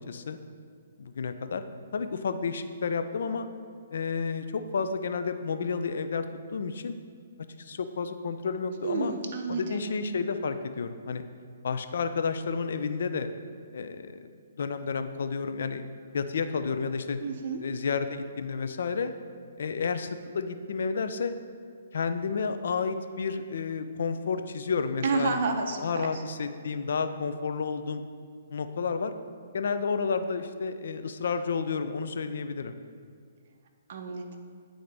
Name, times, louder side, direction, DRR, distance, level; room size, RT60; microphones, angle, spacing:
voice 1, 0.1-0.4 1.0-1.6 1.9-3.5 3.9-6.2 6.5-7.0 7.6-9.1 9.5-11.2 11.6-13.3 13.7-14.3 14.6-15.8 16.1-17.2 17.6-19.1 19.6-21.3 21.9-25.4 25.8-28.0 28.5-29.1 29.5-32.8, left 5 dB, 70° left, 9 dB, 0.4 m, -31 dB
voice 2, 8.8-9.9 17.2-17.6 25.0-26.2 33.9-34.4, right 4 dB, 50° right, 4 dB, 0.7 m, -30 dB
8.5 x 3.8 x 3.3 m, 2.2 s
hypercardioid pair, 160°, 0 cm